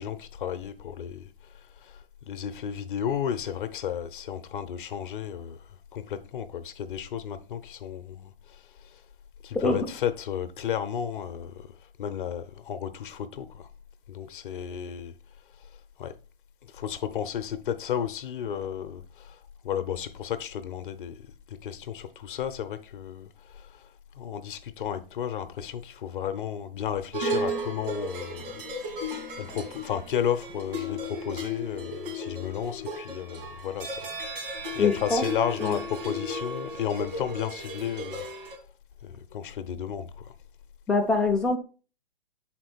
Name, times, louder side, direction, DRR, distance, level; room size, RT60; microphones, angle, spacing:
voice 1, 0.0-9.0 9.4-13.7 14.1-15.2 15.6-15.7 16.0-16.1 16.6-28.6 28.9-29.0 29.4-34.1 34.7-38.5 39.0-40.3, left 9 dB, 60° left, 0.7 m, -33 dB
sound 1, 27.1-38.6, equal, 65° right, 2.3 m, -35 dB
voice 2, 34.8-35.2 35.6-35.8 40.9-41.6, left 3 dB, ahead, 0.4 m, -24 dB
6.1 x 4.3 x 4.4 m
hypercardioid pair, 135°, 30 cm